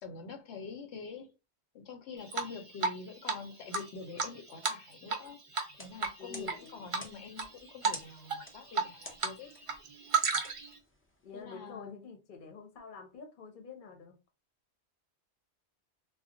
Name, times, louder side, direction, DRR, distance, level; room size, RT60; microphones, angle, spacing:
voice 1, 0.0-1.3 1.7-5.4 5.7-9.5 11.3-12.0, left 5 dB, 80° left, 1.0 m, -46 dB
Drip, 2.3-3.0 3.3-3.4 3.7-5.3 5.5-5.7 6.0-6.6 6.9-7.5 7.8-8.0 8.3-9.3 9.6-10.7, right 5 dB, 45° right, 0.4 m, -32 dB
sound 1, 5.6-11.4, left 1 dB, 20° left, 0.3 m, -52 dB
voice 2, 6.2-6.9 11.2-14.2, left 4 dB, 50° left, 0.8 m, -48 dB
2.3 x 2.0 x 3.7 m
omnidirectional pair, 1.2 m